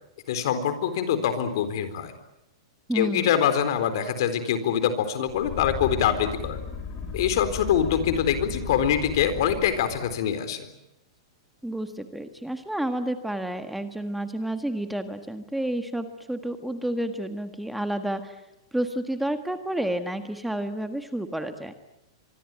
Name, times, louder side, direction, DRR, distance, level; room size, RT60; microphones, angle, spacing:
voice 1, 0.3-2.1 2.9-6.6 7.1-10.7, left 9 dB, 65° left, 11 dB, 4.1 m, -24 dB
voice 2, 2.9-3.3 11.6-18.4 18.7-21.7, right 1 dB, 5° right, 8 dB, 1.6 m, -30 dB
sound 1, 5.3-10.2, left 5 dB, 40° left, 5.9 m, -35 dB
25.0 x 24.0 x 9.1 m, 0.88 s
hypercardioid pair, 135°, 3 cm